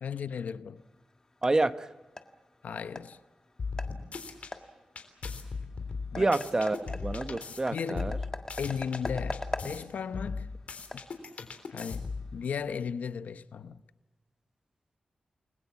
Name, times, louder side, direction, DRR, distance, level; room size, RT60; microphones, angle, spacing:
voice 1, 0.0-0.8 2.6-3.2 6.1-6.3 7.7-8.1 8.6-10.5 10.9-11.1 11.7-13.8, left 6 dB, 90° left, 0.9 m, -36 dB
sound 1, 0.8-12.6, left 2 dB, 25° left, 1.6 m, -44 dB
voice 2, 1.4-1.9 6.2-8.2, right 2 dB, 25° right, 1.0 m, -28 dB
sound 2, 3.6-4.5 5.0-7.6 7.9-9.8 10.1-12.3, left 4 dB, 65° left, 3.6 m, -37 dB
29.5 x 21.5 x 7.2 m
wide cardioid pair, 120°, 3 cm